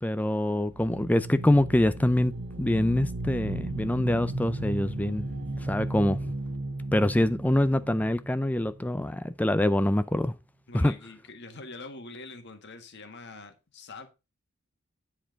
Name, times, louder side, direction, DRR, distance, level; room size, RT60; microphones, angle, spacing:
voice 1, 0.0-2.3 2.6-5.3 5.6-6.3 6.9-10.3 10.7-10.9, left 1 dB, 5° left, 0.4 m, -25 dB
sound 1, 0.7-9.3, right 2 dB, 55° right, 1.5 m, -35 dB
voice 2, 10.7-14.1, left 3 dB, 50° left, 1.6 m, -44 dB
10.0 x 4.5 x 5.1 m
head